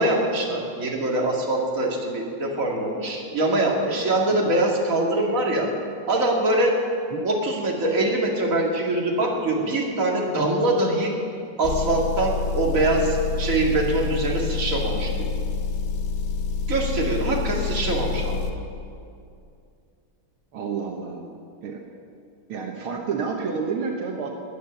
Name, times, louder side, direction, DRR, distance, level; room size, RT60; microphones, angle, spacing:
voice 1, 0.0-5.7 6.1-6.8 7.2-11.2 11.6-15.3 16.7-18.4, right 2 dB, 40° right, -1 dB, 2.5 m, -23 dB
Motor vehicle (road) / Engine, 11.6-18.5, left 4 dB, 50° left, 1.4 m, -27 dB
voice 2, 20.5-21.2 21.6-21.8 22.5-24.3, right 5 dB, 80° right, 1 dB, 2.1 m, -29 dB
19.5 x 9.9 x 7.0 m, 2.4 s
omnidirectional pair, 2.3 m